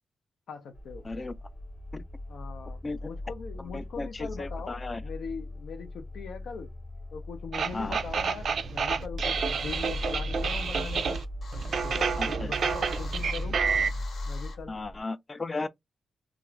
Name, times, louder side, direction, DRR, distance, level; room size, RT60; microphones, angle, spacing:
voice 1, 0.5-1.0 2.3-6.7 7.1-11.2 11.8-13.6 14.3-14.7, left 5 dB, 85° left, 0.5 m, -41 dB
sound 1, 0.7-15.0, left 1 dB, 40° left, 0.8 m, -38 dB
voice 2, 3.6-5.0 7.7-8.0 12.2-12.5 14.7-15.7, left 3 dB, 25° left, 0.3 m, -35 dB
sound 2, 7.5-11.2 11.5-13.9, right 6 dB, 60° right, 0.3 m, -29 dB
sound 3, 9.0-14.6, left 4 dB, 70° left, 0.9 m, -48 dB
2.4 x 2.4 x 3.0 m
wide cardioid pair, 140°, 0 cm